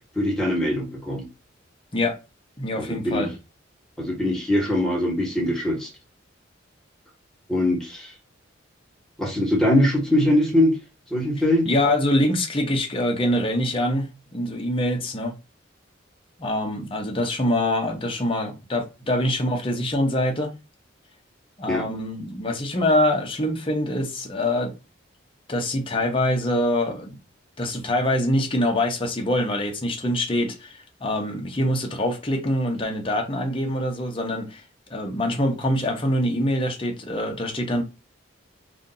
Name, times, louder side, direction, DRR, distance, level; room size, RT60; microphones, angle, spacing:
voice 1, 0.1-1.2 2.8-3.3 4.0-5.9 7.5-8.1 9.2-10.8 11.1-11.7 21.7-21.8, left 1 dB, 5° left, 1.2 m, -22 dB
voice 2, 2.6-3.3 11.7-15.3 16.4-20.5 21.6-24.7 25.5-27.2 27.6-34.6 34.9-37.8, left 1 dB, 25° left, 0.8 m, -24 dB
2.7 x 2.6 x 3.8 m
head